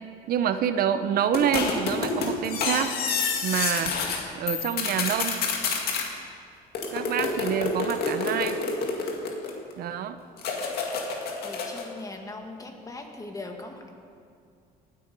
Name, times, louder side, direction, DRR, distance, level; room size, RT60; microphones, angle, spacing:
voice 1, 0.3-2.9 3.4-3.9 4.3-5.4 6.9-8.6 9.8-10.2, right 9 dB, 65° right, 10 dB, 0.7 m, -27 dB
sound 1, 1.3-4.2 4.5-6.1 6.7-9.7 10.4-11.9, left 4 dB, 70° left, 2.1 m, -28 dB
voice 2, 11.4-13.9, left 2 dB, 20° left, 3 dB, 1.8 m, -40 dB
19.0 x 8.6 x 5.3 m, 2.4 s
cardioid pair, 110°, 17 cm